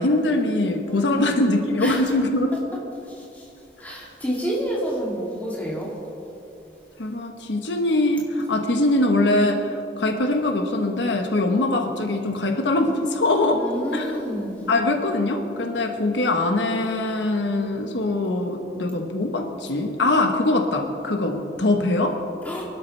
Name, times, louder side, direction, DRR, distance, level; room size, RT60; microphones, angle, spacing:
voice 1, 0.0-2.5 7.0-13.6 13.9-14.2 14.7-22.2, left 2 dB, 85° left, 4 dB, 1.1 m, -22 dB
voice 2, 0.9-1.2 1.8-2.1 3.2-3.4 3.8-5.9 13.5-14.7 22.4-22.6, equal, 10° left, -5 dB, 2.6 m, -29 dB
24.0 x 12.0 x 3.3 m, 2.9 s
head